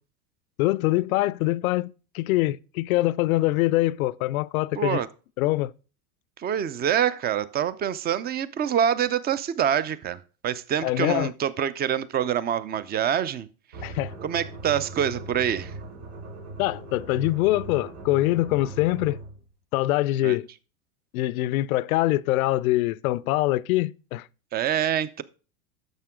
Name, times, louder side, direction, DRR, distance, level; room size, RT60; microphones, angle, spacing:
voice 1, 0.6-5.0 5.4-5.7 10.8-11.3 13.8-14.1 16.6-19.2 19.7-20.5 21.1-24.3, left 17 dB, 70° left, 0.6 m, -24 dB
voice 2, 4.8-5.1 6.4-13.5 13.8-13.9 14.2-15.7 20.2-20.4 24.5-25.2, right 9 dB, 20° right, 0.5 m, -26 dB
sound 1, 13.7-19.4, right 3 dB, 75° right, 2.9 m, -39 dB
10.5 x 6.9 x 3.7 m
hypercardioid pair, 115°, 44 cm